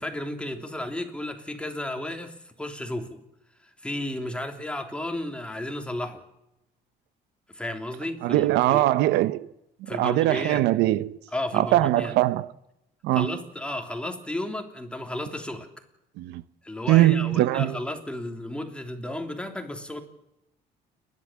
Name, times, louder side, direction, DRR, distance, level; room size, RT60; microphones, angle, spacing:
voice 1, 0.0-3.2 3.6-6.2 7.5-8.9 9.9-10.6 11.3-12.1 13.1-15.7 16.6-20.0, left 1 dB, 5° left, 3.2 m, -33 dB
voice 2, 8.2-9.5 9.9-11.2 11.5-12.5 13.0-13.4 16.2-16.4 16.9-17.8, right 15 dB, 90° right, 0.8 m, -21 dB
29.5 x 12.0 x 7.4 m
cardioid pair, 110°, 17 cm